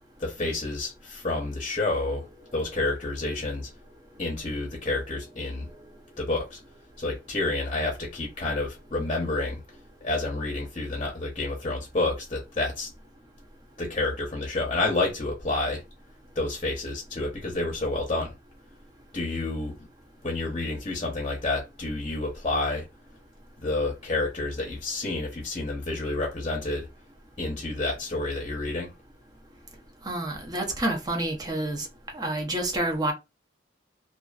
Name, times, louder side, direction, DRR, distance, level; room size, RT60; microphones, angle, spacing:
voice 1, 0.2-2.3 2.5-3.7 4.2-5.7 6.2-6.6 7.0-9.6 10.0-12.9 13.8-15.8 16.3-18.3 19.1-19.9 20.2-22.9 23.6-26.9 27.4-28.9, left 2 dB, 30° left, 0.7 m, -29 dB
voice 2, 30.0-31.9 32.1-33.1, right 1 dB, 20° right, 0.6 m, -28 dB
2.4 x 2.4 x 2.3 m
head